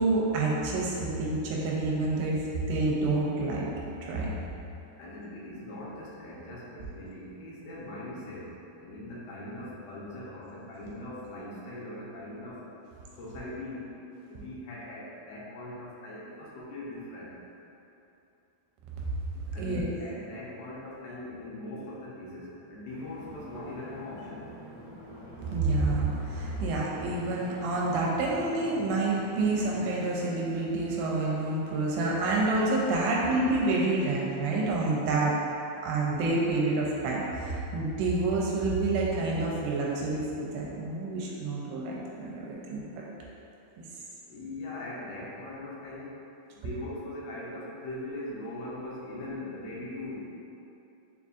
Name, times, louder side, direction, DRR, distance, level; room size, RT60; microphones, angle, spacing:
voice 1, 0.0-2.4 2.7-3.7 4.0-4.3 19.6-19.8 25.5-35.4 35.8-42.8, right 2 dB, 85° right, -4 dB, 2.6 m, -28 dB
voice 2, 5.0-12.6 13.2-13.9 14.3-17.3 19.5-24.5 44.3-46.2 46.5-50.3, left 1 dB, 80° left, -7 dB, 2.7 m, -40 dB
sound 1, 22.9-30.0, equal, 55° right, 1.3 m, -46 dB
6.7 x 2.6 x 2.4 m, 2.8 s
omnidirectional pair, 4.6 m